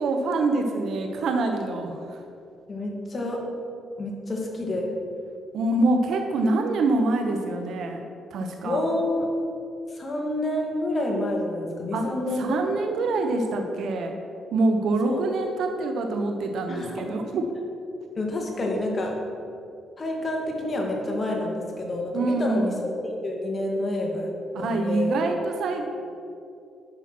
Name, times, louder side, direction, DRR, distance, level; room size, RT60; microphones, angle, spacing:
voice 1, 0.0-2.2 5.5-8.0 8.3-8.8 11.9-12.1 12.4-14.1 14.5-17.5 17.9-18.0 22.1-22.8 24.5-25.9, right 2 dB, 70° right, 4 dB, 0.9 m, -25 dB
voice 2, 2.7-3.4 4.0-4.9 8.6-9.3 9.9-12.6 15.0-15.2 16.7-17.1 18.2-19.1 20.0-24.3 24.6-25.2, left 1 dB, 35° left, 0 dB, 2.1 m, -28 dB
9.8 x 5.9 x 6.1 m, 2.5 s
cardioid pair, 90°, 0 cm